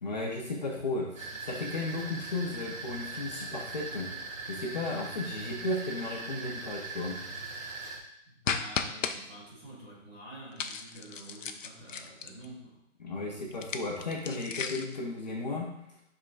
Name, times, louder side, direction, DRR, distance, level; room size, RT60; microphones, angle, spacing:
voice 1, 0.0-4.1 4.4-7.2 13.0-15.7, left 2 dB, 35° left, -2 dB, 0.7 m, -34 dB
sound 1, 1.2-8.0, right 3 dB, 80° right, 1.4 m, -40 dB
voice 2, 8.2-12.8, right 1 dB, 10° right, -9 dB, 0.9 m, -48 dB
sound 2, 8.5-9.2 10.6-12.5 13.5-15.0, left 6 dB, 70° left, 0.7 m, -35 dB
10.0 x 3.7 x 2.5 m, 0.78 s
hypercardioid pair, 160°, 41 cm